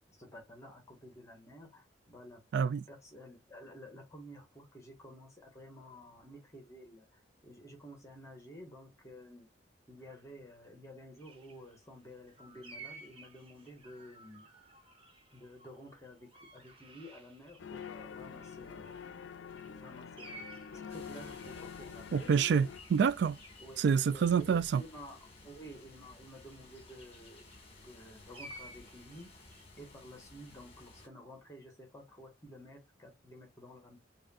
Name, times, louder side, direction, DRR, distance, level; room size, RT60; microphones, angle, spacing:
voice 1, 0.2-9.5 9.9-14.5 15.3-19.2 19.7-20.4 20.7-22.3 23.6-29.4 29.8-34.0, equal, 15° left, 1.4 m, -52 dB
voice 2, 2.5-2.8 22.1-23.4 23.8-24.8, right 6 dB, 65° right, 0.3 m, -27 dB
sound 1, 11.2-18.1 18.4-25.2 26.3-27.8 28.3-29.7, right 2 dB, 30° right, 1.0 m, -55 dB
sound 2, 17.6-22.8, left 7 dB, 75° left, 0.4 m, -46 dB
sound 3, 20.9-31.1, left 2 dB, 30° left, 1.6 m, -55 dB
6.3 x 2.7 x 2.4 m
head